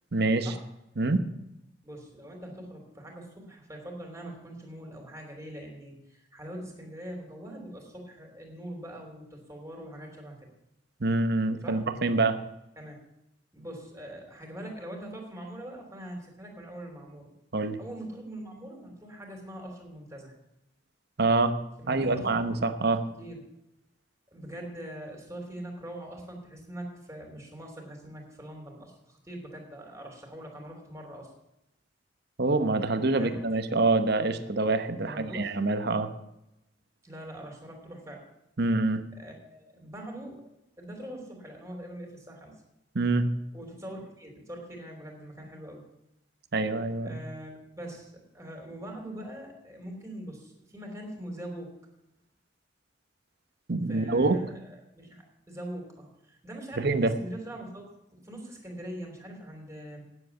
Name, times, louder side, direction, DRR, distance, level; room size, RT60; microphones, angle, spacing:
voice 1, 0.1-0.5 1.0-1.3 11.0-12.4 17.5-17.8 21.2-21.6 21.9-23.0 32.4-36.1 38.6-39.0 42.9-43.3 46.5-47.2 53.7-54.5 56.8-57.2, right 3 dB, 60° right, 10 dB, 0.9 m, -26 dB
voice 2, 1.8-10.4 11.6-11.8 12.8-13.0 13.5-17.3 17.8-20.4 21.8-22.3 23.2-23.5 24.3-31.3 33.2-33.6 35.0-35.6 37.0-38.2 39.2-40.4 40.8-42.6 43.5-45.8 47.0-51.8 53.9-57.8 58.1-60.0, right 1 dB, 15° right, 1 dB, 3.1 m, -42 dB
9.5 x 7.9 x 8.3 m, 0.85 s
head